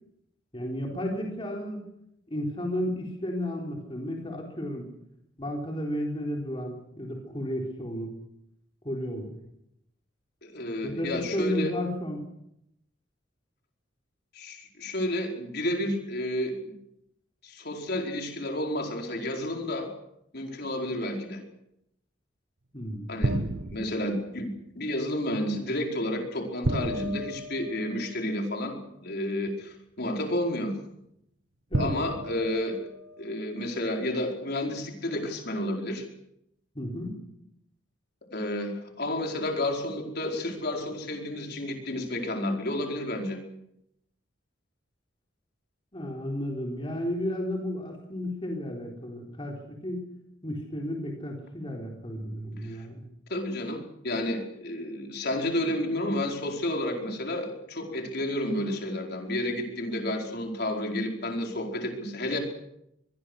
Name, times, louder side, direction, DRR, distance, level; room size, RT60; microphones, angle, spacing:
voice 1, 0.5-1.8 2.3-4.9 5.4-8.1 8.8-9.3 10.8-12.2 22.7-23.1 31.7-31.9 36.8-37.2 45.9-50.0 50.4-53.0, equal, 25° left, 0 dB, 3.8 m, -33 dB
voice 2, 10.4-11.7 14.3-16.7 17.4-19.9 20.3-21.4 23.1-23.4 23.7-30.7 31.8-32.8 33.2-36.0 38.3-43.4 52.6-52.9 53.3-62.4, left 1 dB, 55° left, 2 dB, 4.9 m, -31 dB
sound 1, 23.2-24.2 26.6-28.3 29.5-29.6 31.7-33.4, right 1 dB, 90° right, 1.4 m, -32 dB
24.5 x 22.5 x 6.5 m, 0.80 s
head